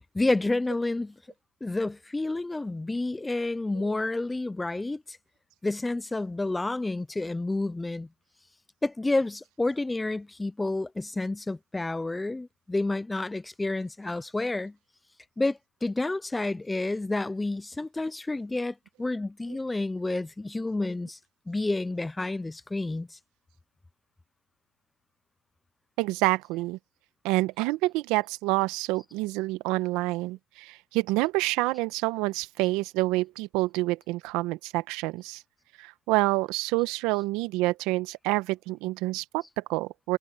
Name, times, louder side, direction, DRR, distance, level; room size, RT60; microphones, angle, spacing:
voice 1, 0.1-1.1 1.6-5.2 5.6-8.1 8.8-14.7 15.4-21.2 21.5-23.2, left 2 dB, 10° left, 0.5 m, -29 dB
voice 2, 26.0-26.8 27.2-35.4 35.8-40.2, right 21 dB, 65° right, 1.3 m, -28 dB
supercardioid pair, 100°, 0 cm